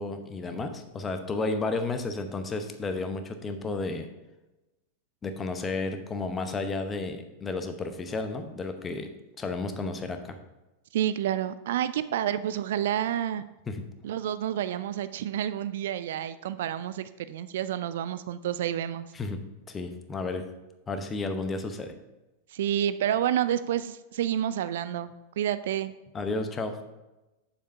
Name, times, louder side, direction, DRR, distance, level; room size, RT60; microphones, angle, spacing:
voice 1, 0.0-4.1 5.2-9.1 9.4-10.4 13.7-13.8 19.1-20.4 20.9-21.9 26.1-26.8, left 3 dB, 20° left, 8 dB, 0.9 m, -32 dB
voice 2, 10.9-13.5 14.0-19.1 22.5-25.9, right 11 dB, 55° right, 14 dB, 0.3 m, -29 dB
7.1 x 7.1 x 4.5 m, 1.0 s
figure-of-eight pair, 90°, 0 cm